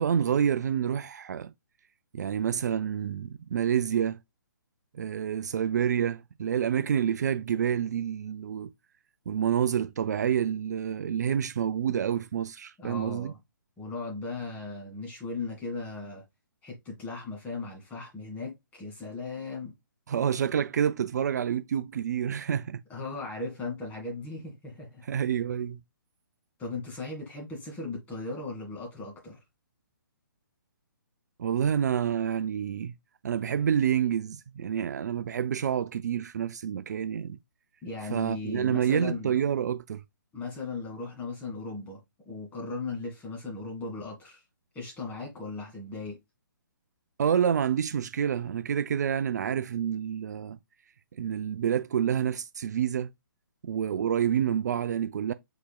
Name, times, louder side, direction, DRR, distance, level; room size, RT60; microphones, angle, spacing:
voice 1, 0.0-1.5 2.1-4.2 4.9-8.7 9.3-13.3 20.1-22.8 25.1-25.8 31.4-32.9 33.2-37.4 38.1-40.0 47.2-50.6 51.1-53.1 53.6-55.3, right 8 dB, 55° right, 0.4 m, -28 dB
voice 2, 12.8-13.4 13.8-16.2 16.6-19.8 22.9-25.0 26.6-29.4 37.8-39.3 40.3-42.0 42.3-44.4 44.7-46.2, left 3 dB, 15° left, 2.0 m, -37 dB
5.0 x 4.7 x 2.2 m
figure-of-eight pair, 140°, 11 cm